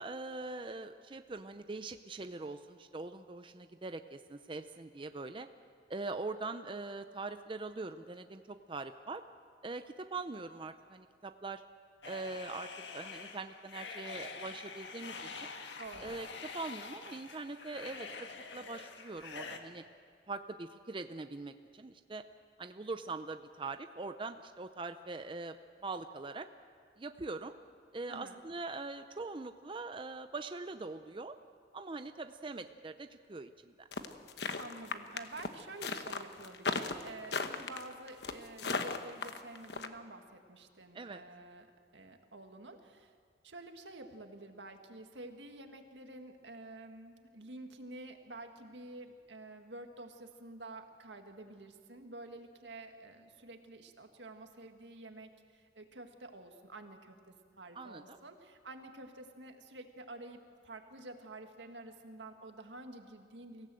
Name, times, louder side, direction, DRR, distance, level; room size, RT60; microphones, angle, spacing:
voice 1, 0.0-5.5 5.9-9.2 9.6-11.6 12.0-15.5 16.0-16.3 16.5-19.8 20.3-22.2 22.6-25.6 25.8-26.5 27.0-27.6 27.9-31.3 31.7-33.9 40.9-41.2 57.8-58.2, right 3 dB, 30° right, 9 dB, 0.6 m, -42 dB
sound 1, 12.0-19.6, left 4 dB, 85° left, 1.7 m, -46 dB
voice 2, 15.8-16.1 28.1-28.4 34.6-41.7 41.9-43.1 43.4-63.7, right 2 dB, 85° right, 5 dB, 1.9 m, -49 dB
sound 2, 33.9-39.9, left 4 dB, 70° left, 1.2 m, -36 dB
25.0 x 16.5 x 7.7 m, 2.2 s
head